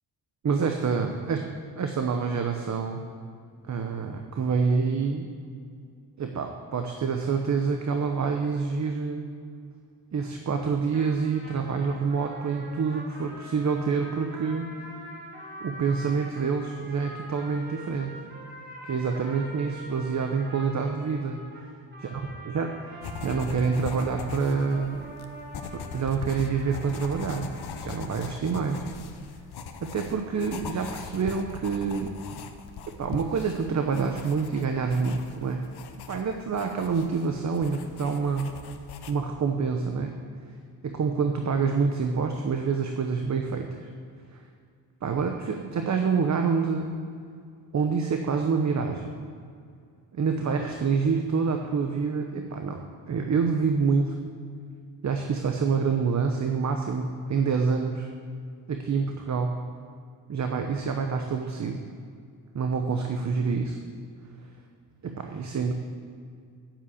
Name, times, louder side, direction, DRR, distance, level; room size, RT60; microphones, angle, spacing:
voice 1, 0.4-1.4 1.8-3.0 3.7-5.3 6.2-9.3 10.1-14.7 15.6-18.1 18.8-21.4 22.1-22.2 22.5-25.1 25.7-28.9 29.8-32.2 33.0-35.6 36.1-38.5 39.1-40.2 40.8-43.9 44.3-44.4 45.0-46.9 47.7-49.1 50.1-54.2 55.0-58.1 58.7-59.6 60.3-61.8 62.5-63.8 65.0-65.7, right 5 dB, 45° right, 4 dB, 0.9 m, -27 dB
sound 1, 10.9-28.1, right 1 dB, 25° right, 2.6 m, -44 dB
sound 2, 23.0-39.1, left 5 dB, 75° left, 0.9 m, -41 dB
9.0 x 7.4 x 8.4 m, 2.2 s
cardioid pair, 100°, 39 cm